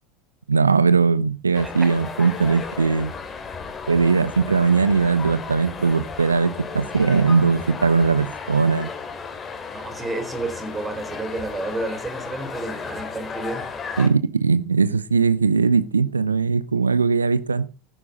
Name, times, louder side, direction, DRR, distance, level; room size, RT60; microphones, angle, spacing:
voice 1, 0.5-3.1 3.9-8.9 14.0-17.7, right 5 dB, 80° right, 17 dB, 0.8 m, -20 dB
sound 1, 1.5-14.1, left 5 dB, 25° left, 2.7 m, -34 dB
voice 2, 9.7-13.7, right 2 dB, 15° right, 8 dB, 3.6 m, -31 dB
15.0 x 10.0 x 3.9 m, 0.30 s
figure-of-eight pair, 75°, 0 cm